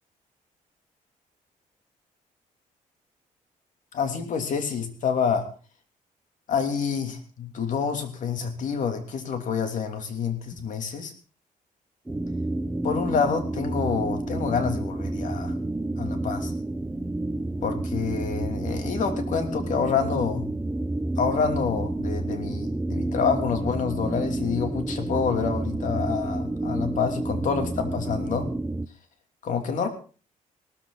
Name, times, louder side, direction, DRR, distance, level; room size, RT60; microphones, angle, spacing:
voice 1, 3.9-5.5 6.5-11.1 12.8-15.6 16.0-16.5 17.6-20.5 21.2-28.5 29.4-29.9, left 6 dB, 65° left, 6 dB, 3.1 m, -27 dB
sound 1, 12.1-28.9, right 2 dB, 10° right, 0.7 m, -29 dB
18.0 x 14.0 x 4.1 m, 0.37 s
cardioid pair, 115°, 14 cm